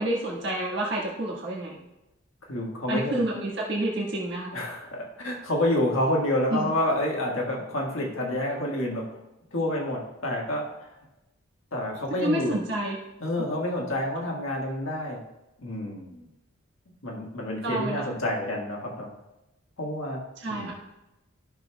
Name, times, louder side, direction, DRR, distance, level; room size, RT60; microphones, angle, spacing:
voice 1, 0.0-1.8 2.9-4.5 6.5-6.7 12.2-13.0 17.6-18.0 20.4-20.7, right 1 dB, 55° right, -4 dB, 1.5 m, -29 dB
voice 2, 2.5-3.2 4.5-9.1 9.5-10.9 11.7-12.6 13.2-15.2 15.6-16.2 17.0-19.1 19.8-20.2 20.5-20.7, left 1 dB, 70° left, -1 dB, 1.5 m, -28 dB
13.0 x 6.1 x 2.2 m, 0.94 s
head